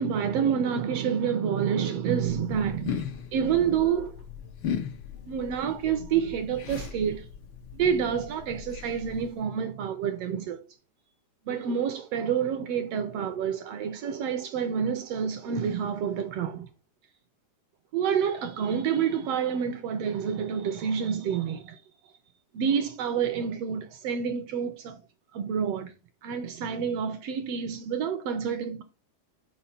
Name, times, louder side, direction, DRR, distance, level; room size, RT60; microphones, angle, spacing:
voice 1, 0.0-3.0 3.3-4.2 5.3-7.3 7.7-10.6 11.5-16.7 17.9-21.8 22.5-25.0 25.3-25.9 26.2-28.8, right 7 dB, 75° right, 1.4 m, -28 dB
sound 1, 2.1-9.4, left 8 dB, 85° left, 1.0 m, -38 dB
5.4 x 4.5 x 5.6 m
omnidirectional pair, 3.5 m